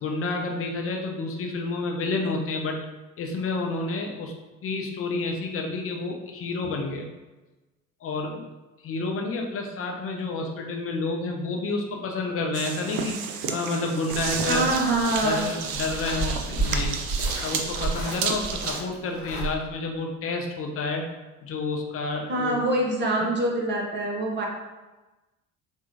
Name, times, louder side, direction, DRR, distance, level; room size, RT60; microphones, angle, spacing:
voice 1, 0.0-2.8 3.2-4.3 4.6-7.1 8.0-8.4 8.8-13.2 13.5-14.8 15.2-17.0 17.4-21.1 21.4-22.6, left 3 dB, 35° left, 1 dB, 0.6 m, -29 dB
sound 1, 12.5-18.8, right 6 dB, 50° right, 0.5 m, -32 dB
sound 2, 14.1-19.5, right 2 dB, 75° left, 1.0 m, -32 dB
voice 2, 14.5-15.5 22.3-24.5, right 1 dB, 25° right, -1 dB, 0.9 m, -25 dB
4.3 x 2.2 x 2.7 m, 1.1 s
figure-of-eight pair, 50°, 42 cm